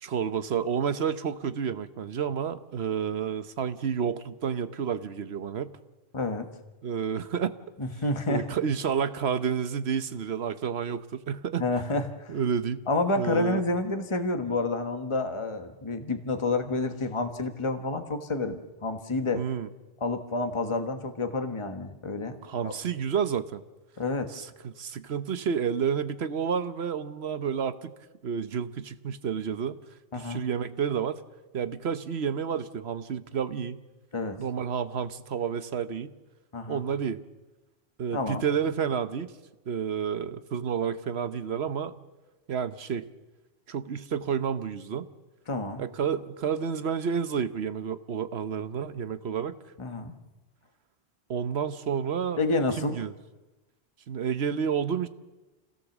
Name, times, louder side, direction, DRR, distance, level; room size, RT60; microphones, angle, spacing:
voice 1, 0.0-5.7 6.8-7.5 8.3-11.7 12.3-12.8 13.2-13.6 19.3-19.7 22.4-23.6 24.3-27.9 28.2-29.8 30.1-31.2 31.5-33.8 34.4-36.1 36.7-37.2 38.0-39.3 39.7-41.9 42.5-43.1 43.7-45.1 45.8-49.6 51.3-52.4 52.8-53.1 54.1-55.1, right 7 dB, 70° right, 12 dB, 1.2 m, -30 dB
voice 2, 6.1-6.5 7.8-8.5 11.6-12.4 12.9-19.4 20.0-22.4 22.6-22.7 24.0-24.3 30.1-30.4 34.1-34.4 36.5-36.8 38.1-38.4 45.5-45.8 49.8-50.1 52.4-53.0, left 2 dB, 25° left, 6 dB, 1.4 m, -29 dB
27.0 x 16.5 x 7.3 m, 1.1 s
omnidirectional pair, 1.1 m